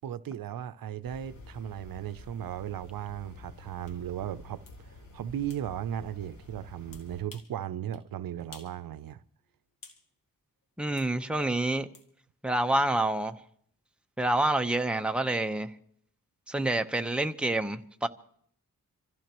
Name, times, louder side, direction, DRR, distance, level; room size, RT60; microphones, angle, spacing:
voice 1, 0.0-4.6 5.1-9.2, right 10 dB, 85° right, 0.6 m, -36 dB
sound 1, 1.0-7.2, left 2 dB, 60° left, 3.9 m, -50 dB
sound 2, 3.9-4.0 4.7-4.8 5.5-5.7 6.9-7.6 7.9-8.1 8.5-8.8 9.1-10.1 11.0-11.1 11.9-12.1, left 4 dB, 75° left, 2.4 m, -52 dB
voice 2, 10.8-11.9 12.4-13.4 14.2-15.7 16.5-18.1, right 1 dB, 5° right, 0.9 m, -27 dB
26.5 x 15.0 x 3.0 m
cardioid pair, 75°, 34 cm